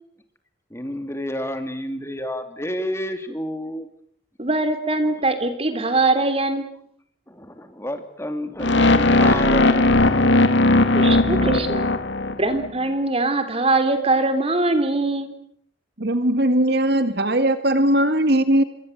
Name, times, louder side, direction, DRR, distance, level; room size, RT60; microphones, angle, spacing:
voice 1, 0.7-3.9 5.0-5.1 7.3-10.8, left 1 dB, 15° left, 7 dB, 2.9 m, -30 dB
voice 2, 4.4-6.6 10.9-11.9 12.4-15.3, right 2 dB, 30° right, 9 dB, 3.4 m, -22 dB
sound 1, 8.6-12.7, left 2 dB, 65° left, 2.1 m, -17 dB
voice 3, 16.0-18.6, right 1 dB, 60° right, 10 dB, 2.0 m, -19 dB
27.0 x 23.0 x 8.0 m, 0.64 s
head